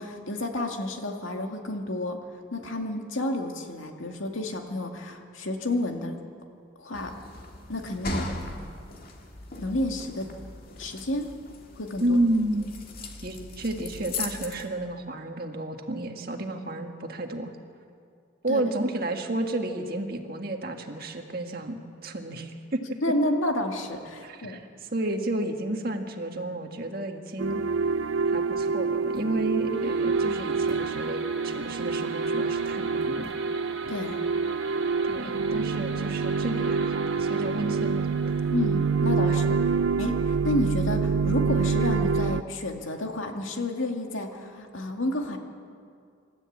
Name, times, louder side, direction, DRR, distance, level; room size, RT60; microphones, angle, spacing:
voice 1, 0.0-2.2 2.5-6.2 6.8-7.1 7.7-8.3 9.6-10.3 10.8-11.3 11.8-12.2 18.5-18.6 23.0-24.6 33.9-34.2 38.5-39.6 40.0-45.4, left 1 dB, 85° left, 3 dB, 2.2 m, -30 dB
sound 1, 6.9-14.7, left 3 dB, 45° left, 2.1 m, -39 dB
voice 2, 12.0-12.7 13.2-17.5 18.4-23.0 24.2-27.6 28.3-33.4 35.0-38.4, right 1 dB, 50° right, 4 dB, 1.7 m, -31 dB
sound 2, 27.4-42.4, right 4 dB, 85° right, 0.4 m, -26 dB
sound 3, 29.7-40.7, right 4 dB, 65° right, 1.5 m, -41 dB
27.0 x 12.5 x 8.7 m, 2.3 s
head